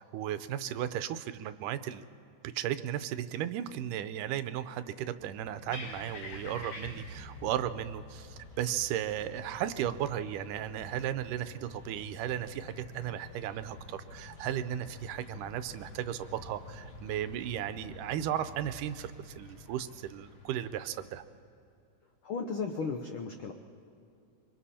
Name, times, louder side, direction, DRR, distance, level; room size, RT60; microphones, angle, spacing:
voice 1, 0.0-2.0 2.5-21.2, right 11 dB, 85° right, 12 dB, 2.3 m, -35 dB
sound 1, 5.2-21.2, left 2 dB, 65° left, 3.4 m, -48 dB
sound 2, 6.8-11.3, equal, 5° left, 3.3 m, -54 dB
voice 2, 22.2-23.5, left 4 dB, 80° left, 5 dB, 1.1 m, -35 dB
26.0 x 23.5 x 4.3 m, 2.5 s
omnidirectional pair, 3.6 m